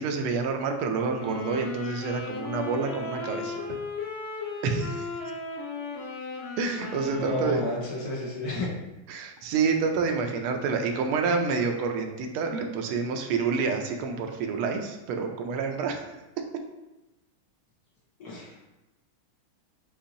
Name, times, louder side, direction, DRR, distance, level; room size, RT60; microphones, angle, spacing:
voice 1, 0.0-3.8 4.6-5.1 6.6-7.6 9.1-16.1, right 5 dB, 85° right, 4 dB, 1.5 m, -28 dB
sound 1, 1.1-7.9, left 4 dB, 80° left, 1.6 m, -36 dB
voice 2, 7.2-8.7 18.2-18.7, left 2 dB, 55° left, -4 dB, 1.2 m, -32 dB
6.8 x 2.6 x 2.6 m, 0.99 s
omnidirectional pair, 2.3 m